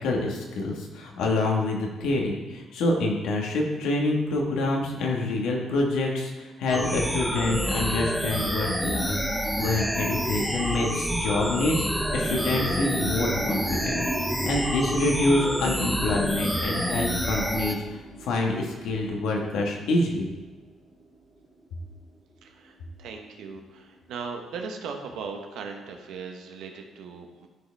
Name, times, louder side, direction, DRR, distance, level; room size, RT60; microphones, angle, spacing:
voice 1, 0.0-17.8 18.2-20.3, left 2 dB, 85° left, 0 dB, 1.6 m, -27 dB
sound 1, 6.7-17.7, equal, ahead, 0.8 m, -28 dB
sound 2, 11.9-22.0 22.3-24.0, right 2 dB, 30° right, 2.0 m, -38 dB
voice 2, 22.4-27.5, right 5 dB, 85° right, 3 dB, 1.1 m, -38 dB
13.0 x 4.9 x 3.5 m, 1.2 s
cardioid pair, 90°, 0 cm